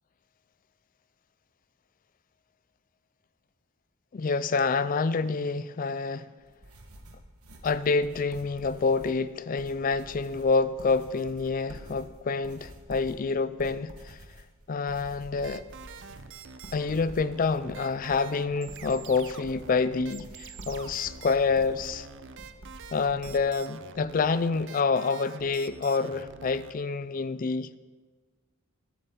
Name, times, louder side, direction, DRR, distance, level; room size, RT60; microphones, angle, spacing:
voice 1, 4.1-6.3 7.6-14.2 14.7-15.6 16.7-22.1 22.9-27.8, left 4 dB, 40° left, 0.4 m, -27 dB
sound 1, 6.4-23.4, right 1 dB, 85° right, 1.5 m, -48 dB
sound 2, 15.4-26.7, right 5 dB, 55° right, 0.6 m, -46 dB
19.5 x 8.4 x 3.8 m
head